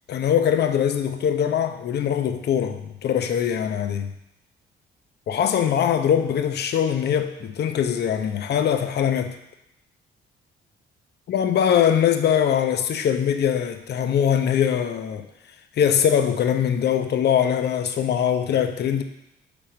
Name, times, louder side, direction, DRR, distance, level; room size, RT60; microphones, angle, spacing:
voice 1, 0.1-4.1 5.3-9.3 11.3-15.2 15.8-19.0, left 8 dB, 60° left, 7 dB, 0.6 m, -22 dB
5.1 x 4.0 x 5.8 m, 0.82 s
cardioid pair, 90°, 20 cm